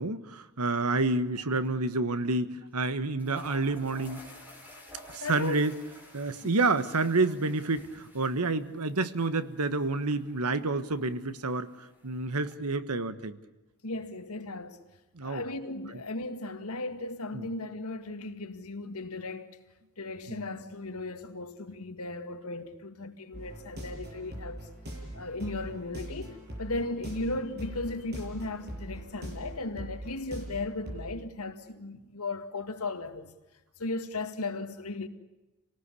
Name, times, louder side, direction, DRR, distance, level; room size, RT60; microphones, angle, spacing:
voice 1, 0.0-4.2 5.1-5.8 6.1-11.7 12.0-13.4 15.2-15.4 17.3-17.5 20.3-20.4, right 3 dB, 85° right, 1.4 m, -29 dB
sound 1, 1.1-1.4 1.6-1.7 2.8-2.9 3.2-12.6, left 1 dB, 10° right, 5.5 m, -52 dB
voice 2, 5.2-5.6 6.4-6.5 13.8-14.8 15.2-19.6 20.0-24.7 25.1-33.3 33.8-35.1, left 2 dB, 75° left, 2.1 m, -36 dB
sound 2, 23.3-31.1, right 1 dB, 50° right, 7.2 m, -42 dB
28.0 x 19.0 x 8.4 m
head